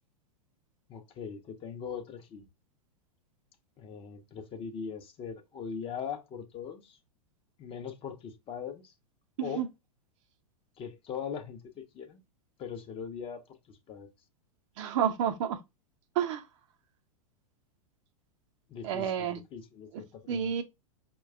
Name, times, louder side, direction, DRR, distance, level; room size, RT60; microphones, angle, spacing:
voice 1, 0.9-2.5 3.8-7.0 7.6-8.9 9.4-9.7 10.8-12.2 12.6-14.1 18.7-20.5, left 7 dB, 30° left, 0.6 m, -41 dB
voice 2, 14.8-15.6 16.2-16.4 18.8-19.4 19.9-20.6, right 9 dB, 55° right, 0.6 m, -30 dB
4.7 x 2.2 x 3.3 m
hypercardioid pair, 100°, 19 cm